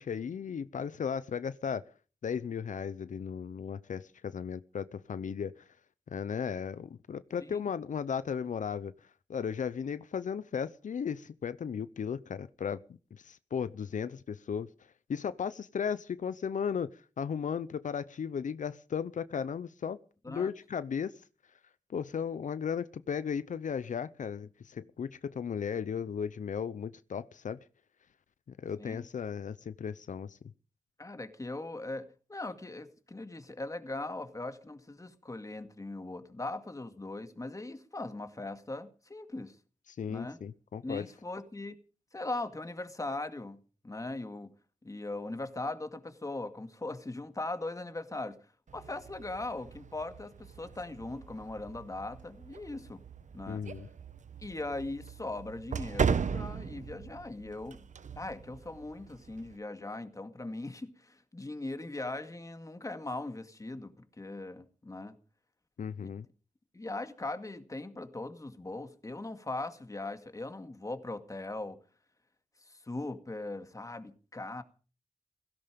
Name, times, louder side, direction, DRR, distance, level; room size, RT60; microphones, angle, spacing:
voice 1, 0.0-1.8 2.2-5.7 6.1-8.9 9.3-12.8 13.1-14.7 15.1-20.0 20.3-21.1 21.9-27.6 28.5-30.4 39.9-41.0 53.5-53.9 65.8-66.3, left 7 dB, 85° left, 0.7 m, -35 dB
voice 2, 31.0-39.6 40.1-40.4 40.8-41.7 42.1-44.5 44.8-48.4 48.7-53.0 53.3-53.6 54.4-57.9 58.1-65.2 66.0-66.2 66.7-71.8 72.7-74.6, left 2 dB, 25° left, 2.1 m, -40 dB
sound 1, 48.7-59.6, right 6 dB, 75° right, 1.0 m, -38 dB
17.0 x 16.5 x 5.2 m
wide cardioid pair, 80°, 13 cm